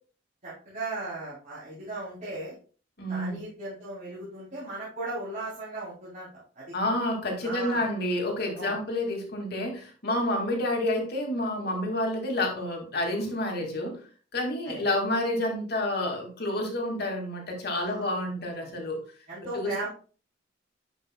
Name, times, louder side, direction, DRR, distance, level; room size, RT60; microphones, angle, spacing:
voice 1, 0.4-2.5 3.1-6.7 7.4-7.9 8.5-8.8 14.6-14.8 17.8-18.2 19.3-19.9, right 2 dB, 45° right, -9 dB, 3.4 m, -37 dB
voice 2, 3.0-3.4 6.7-14.0 14.3-19.0 19.5-19.9, left 1 dB, 55° left, 1 dB, 2.2 m, -29 dB
10.5 x 5.5 x 2.2 m, 0.38 s
head